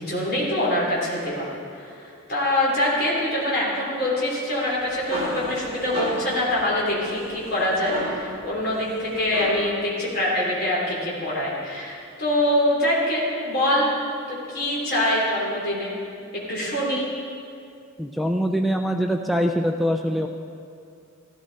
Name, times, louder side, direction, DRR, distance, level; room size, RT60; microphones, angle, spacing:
voice 1, 0.0-13.9 14.3-15.9 16.5-17.1, left 1 dB, 45° left, -5 dB, 3.3 m, -24 dB
sound 1, 4.6-9.8, equal, 30° right, 4.0 m, -34 dB
voice 2, 18.0-20.3, equal, ahead, 4 dB, 0.4 m, -23 dB
15.0 x 13.5 x 4.1 m, 2.4 s
head